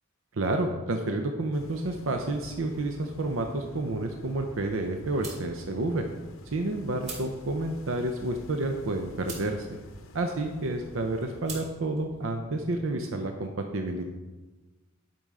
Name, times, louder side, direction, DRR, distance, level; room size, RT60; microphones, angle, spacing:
voice 1, 0.3-6.1 6.5-9.7 10.1-14.0, right 2 dB, 80° right, 4 dB, 0.6 m, -30 dB
sound 1, 1.5-11.4, left 2 dB, 90° left, 0.8 m, -50 dB
sound 2, 2.6-12.9, right 3 dB, 35° right, 2.7 m, -48 dB
10.5 x 5.5 x 3.6 m, 1.2 s
head